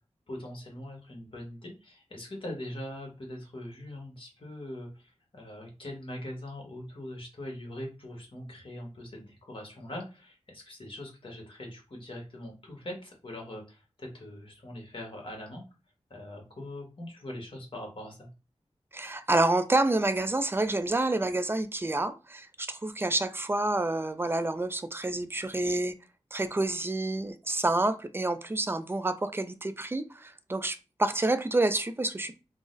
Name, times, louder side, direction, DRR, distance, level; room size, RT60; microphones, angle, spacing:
voice 1, 0.3-15.6 16.1-18.3, left 1 dB, 50° left, 1.2 m, -42 dB
voice 2, 18.9-25.9 26.3-32.4, right 2 dB, 20° right, 0.4 m, -28 dB
3.8 x 2.0 x 2.5 m
cardioid pair, 50°, 12 cm